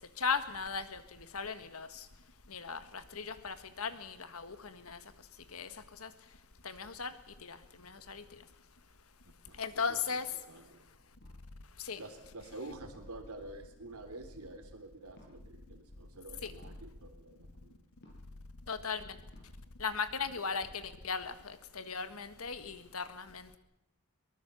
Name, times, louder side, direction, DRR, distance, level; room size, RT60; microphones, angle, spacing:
voice 1, 0.2-1.0 1.3-1.9 2.5-5.0 5.5-5.7 6.0-6.1 6.6-7.1 7.4-7.6 7.8-8.2 9.6-10.3 11.8-12.0 16.4-16.5 18.7-19.0 19.8-23.6, left 5 dB, 75° left, 11 dB, 1.6 m, -37 dB
voice 2, 9.2-10.0 10.3-10.9 12.0-17.8, right 2 dB, 85° right, 6 dB, 3.5 m, -49 dB
sound 1, 11.2-11.4 12.9-13.3 15.1-15.3 16.6-16.8 18.0-18.3 19.3-19.5, left 1 dB, 50° left, 7.3 m, -59 dB
23.0 x 19.5 x 7.0 m, 0.89 s
head